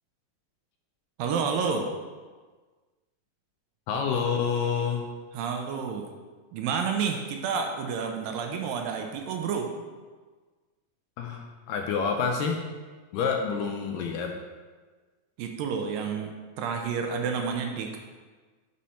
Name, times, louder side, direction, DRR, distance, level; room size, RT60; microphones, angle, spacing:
voice 1, 1.2-1.9 5.3-6.1 6.5-9.7 15.4-16.3 16.6-18.0, right 6 dB, 80° right, 4 dB, 2.2 m, -29 dB
voice 2, 3.9-5.0 11.2-12.6 13.1-14.3, left 6 dB, 80° left, 2 dB, 2.0 m, -28 dB
6.2 x 5.5 x 4.2 m, 1.4 s
omnidirectional pair, 4.2 m